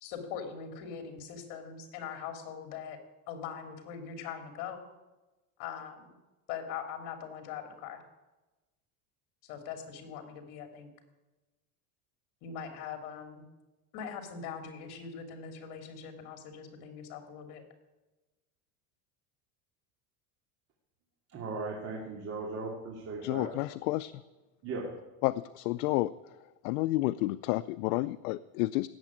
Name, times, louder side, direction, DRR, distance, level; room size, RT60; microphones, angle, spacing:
voice 1, 0.0-3.0 3.3-4.8 5.6-6.1 6.5-8.0 9.4-10.9 12.4-13.4 13.9-17.6, left 7 dB, 65° left, 5 dB, 3.0 m, -41 dB
voice 2, 21.3-23.5 24.6-24.9, right 3 dB, 35° right, -2 dB, 2.6 m, -37 dB
voice 3, 23.2-24.1 25.2-26.1 26.6-28.9, left 18 dB, 85° left, 12 dB, 0.6 m, -30 dB
17.0 x 7.3 x 8.9 m, 1.1 s
cardioid pair, 155°, 43 cm